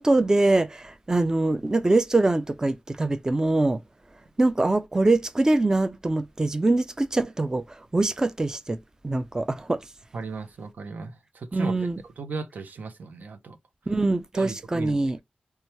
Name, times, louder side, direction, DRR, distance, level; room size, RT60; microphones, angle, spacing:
voice 1, 0.0-3.8 4.4-7.6 7.9-8.8 9.0-9.8 11.5-12.0 13.9-15.2, right 2 dB, 20° right, 0.4 m, -23 dB
voice 2, 10.1-11.9 12.2-13.6 14.3-15.2, right 4 dB, 80° right, 0.6 m, -36 dB
3.1 x 2.3 x 4.3 m
wide cardioid pair, 90°, 3 cm